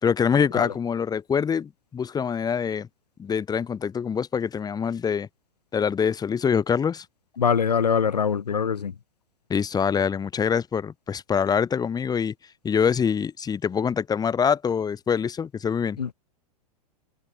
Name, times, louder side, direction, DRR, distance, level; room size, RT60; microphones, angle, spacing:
voice 1, 0.0-2.9 3.2-5.3 5.7-7.1 9.5-12.3 12.6-16.0, left 7 dB, 20° left, 3.8 m, -25 dB
voice 2, 7.4-8.9 16.0-16.1, left 7 dB, 80° left, 2.4 m, -23 dB
hypercardioid pair, 105°, 20 cm